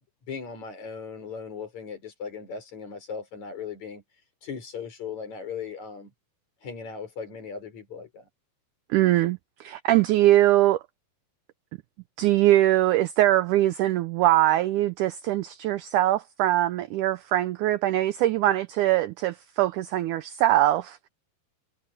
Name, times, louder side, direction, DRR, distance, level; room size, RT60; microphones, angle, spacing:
voice 1, 0.3-4.0 4.4-6.1 6.6-8.3, left 6 dB, 50° left, 6.0 m, -38 dB
voice 2, 8.9-10.8 12.2-21.0, right 14 dB, 85° right, 1.8 m, -22 dB
omnidirectional pair, 4.3 m